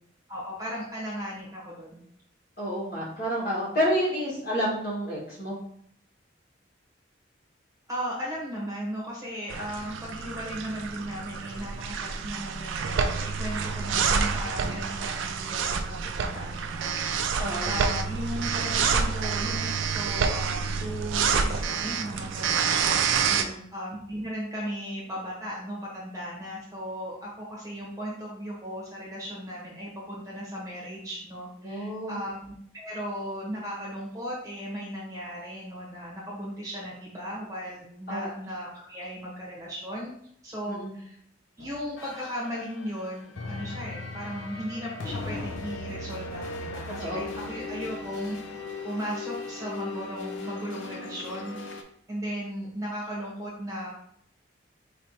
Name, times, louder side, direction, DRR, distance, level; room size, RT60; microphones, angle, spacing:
voice 1, 0.3-2.0 7.9-40.1 40.4-41.2 41.6-51.8 52.1-53.9, equal, 15° right, -4 dB, 1.0 m, -36 dB
voice 2, 2.6-5.6 17.4-17.7 23.3-23.6 31.6-32.2 38.1-38.3 40.7-40.9 46.9-47.2, equal, 50° left, -6 dB, 1.7 m, -29 dB
sound 1, 9.5-23.4, right 6 dB, 75° right, 0.4 m, -28 dB
sound 2, 41.6-51.8, left 3 dB, 80° left, 0.5 m, -38 dB
4.5 x 3.1 x 2.8 m, 0.67 s
head